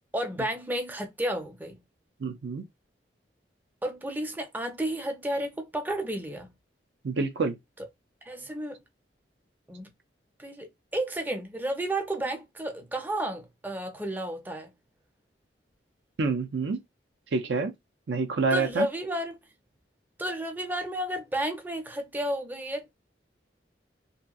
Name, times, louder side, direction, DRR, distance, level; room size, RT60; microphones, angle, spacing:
voice 1, 0.1-1.8 3.8-6.5 8.3-8.8 9.7-9.9 10.4-14.7 18.5-19.4 20.2-22.9, right 1 dB, 10° right, 0.5 m, -32 dB
voice 2, 2.2-2.6 7.0-7.6 16.2-16.8 17.3-17.7 18.1-18.9, right 4 dB, 75° right, 0.5 m, -27 dB
2.8 x 2.6 x 2.3 m
head